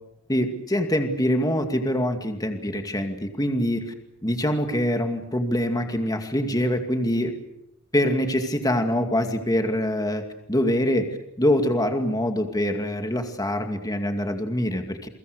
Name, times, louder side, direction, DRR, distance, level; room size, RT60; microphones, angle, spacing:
voice 1, 0.3-3.9 4.2-7.4 7.9-10.2 10.5-15.1, equal, 20° left, 6 dB, 2.3 m, -24 dB
29.5 x 23.0 x 6.7 m, 0.79 s
head